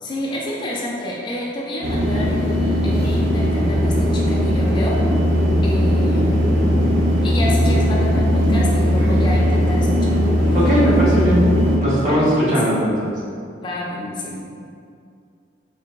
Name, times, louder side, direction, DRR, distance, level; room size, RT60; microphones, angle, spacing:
voice 1, 0.0-5.0 5.6-6.3 7.2-10.2 10.5-10.8 12.1-12.7 13.6-14.5, left 1 dB, 25° left, -4 dB, 0.3 m, -29 dB
sound 1, 1.8-11.8, equal, 65° right, 0.5 m, -18 dB
voice 2, 10.5-11.4 11.8-12.9, equal, 40° right, -7 dB, 1.0 m, -18 dB
3.8 x 3.4 x 2.2 m, 2.4 s
head